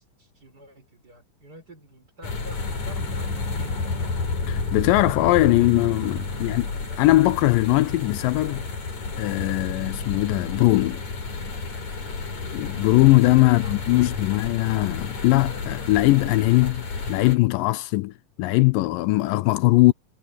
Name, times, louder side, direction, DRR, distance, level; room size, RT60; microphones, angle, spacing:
voice 1, 0.0-3.8 6.3-6.6 13.4-14.3, equal, 25° right, 6.6 m, -48 dB
sound 1, 2.2-17.4, left 3 dB, 55° left, 5.9 m, -31 dB
voice 2, 4.5-6.7 7.0-8.6 9.2-11.0 12.5-16.8 17.1-19.9, left 19 dB, 85° left, 2.2 m, -20 dB
omnidirectional pair, 3.9 m